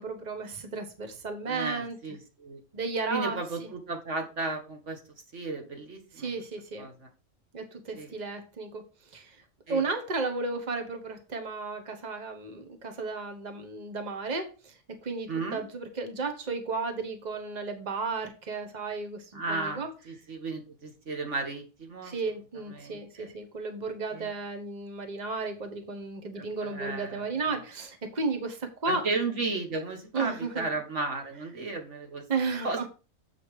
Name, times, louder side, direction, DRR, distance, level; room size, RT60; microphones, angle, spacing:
voice 1, 0.0-2.0 2.7-3.7 6.2-6.9 7.5-8.8 9.1-9.4 9.7-14.7 15.0-19.9 22.0-29.0 30.1-30.7 32.3-32.9, right 4 dB, 35° right, 6 dB, 1.3 m, -33 dB
voice 2, 1.5-2.6 3.1-5.0 5.3-6.3 6.8-7.1 7.9-8.1 9.7-9.8 15.3-15.7 19.3-22.1 22.7-23.3 24.1-24.3 26.3-27.2 28.9-32.2 32.6-32.9, right 3 dB, 55° right, 3 dB, 1.8 m, -34 dB
7.8 x 5.0 x 4.8 m, 0.33 s
omnidirectional pair, 1.4 m